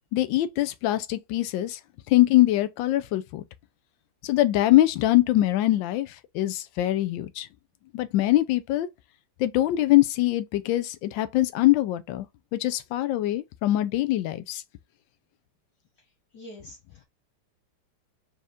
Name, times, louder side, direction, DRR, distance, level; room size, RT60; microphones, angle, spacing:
voice 1, 0.1-1.8 2.1-3.4 4.2-7.5 7.9-8.9 9.4-12.3 12.5-14.6, left 15 dB, 75° left, 1.2 m, -23 dB
voice 2, 16.3-17.0, left 1 dB, 55° left, 1.7 m, -45 dB
4.2 x 3.5 x 2.5 m
omnidirectional pair, 2.3 m